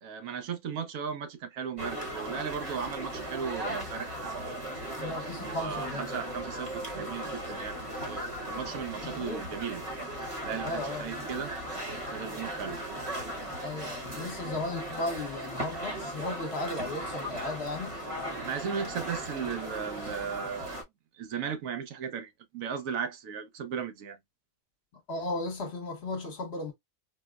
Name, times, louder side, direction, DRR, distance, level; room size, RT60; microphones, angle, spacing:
voice 1, 0.0-4.6 5.4-7.8 8.1-9.8 10.4-11.5 12.1-12.8 18.4-20.8 21.2-24.2, right 7 dB, 80° right, 1.1 m, -36 dB
sound 1, 1.8-20.8, right 1 dB, 30° right, 0.9 m, -37 dB
voice 2, 5.0-6.1 9.0-9.5 10.6-11.3 13.6-18.0 25.1-26.7, left 2 dB, 55° left, 1.1 m, -36 dB
4.2 x 2.0 x 2.3 m
omnidirectional pair, 1.4 m